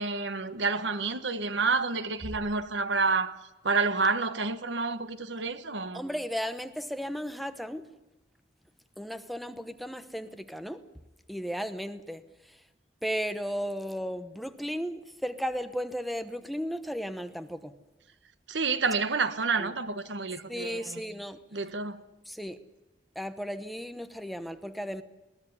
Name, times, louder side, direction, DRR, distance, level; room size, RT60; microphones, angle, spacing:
voice 1, 0.0-3.4 3.6-6.0 18.5-21.0 21.5-22.0, right 4 dB, 85° right, 1.3 m, -29 dB
voice 2, 5.9-7.9 9.0-10.8 11.3-12.2 13.0-17.7 19.6-19.7 20.5-21.4 22.3-22.6 23.1-25.0, equal, ahead, 1.0 m, -35 dB
21.0 x 16.0 x 9.8 m
head